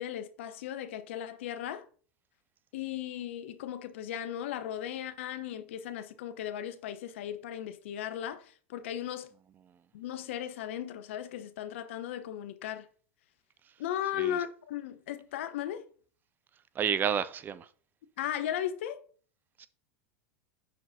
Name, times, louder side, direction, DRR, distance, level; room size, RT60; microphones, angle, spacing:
voice 1, 0.0-1.9 2.7-9.3 9.9-12.9 13.8-15.9 18.2-19.0, left 11 dB, 65° left, 0.7 m, -36 dB
voice 2, 16.7-17.7 19.6-19.7, right 8 dB, 25° right, 0.4 m, -30 dB
10.5 x 3.9 x 2.7 m
figure-of-eight pair, 85°, 7 cm